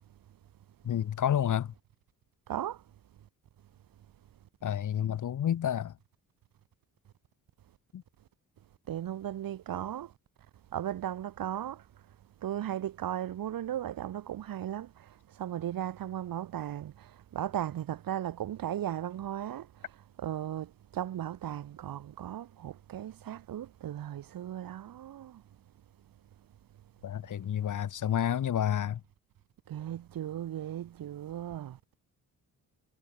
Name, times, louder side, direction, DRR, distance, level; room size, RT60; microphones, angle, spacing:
voice 1, 0.8-1.7 4.6-5.9 7.9-8.0 27.0-29.0, left 10 dB, 55° left, 1.5 m, -29 dB
voice 2, 8.9-10.1 10.7-11.8 12.4-14.9 15.4-19.7 20.2-25.4 29.7-31.8, right 11 dB, 70° right, 2.2 m, -36 dB
cardioid pair, 75°, 36 cm